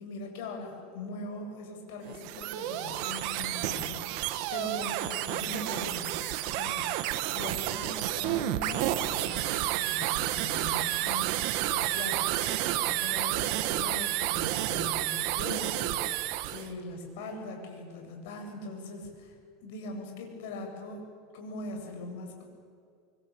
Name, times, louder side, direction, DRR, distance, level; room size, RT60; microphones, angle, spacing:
voice 1, 0.0-4.3 4.5-11.4 11.7-21.0 21.3-22.4, left 2 dB, 70° left, 3 dB, 7.8 m, -41 dB
sound 1, 2.1-16.7, right 14 dB, 60° right, 1.7 m, -30 dB
25.5 x 24.0 x 8.8 m, 2.3 s
supercardioid pair, 135°, 0 cm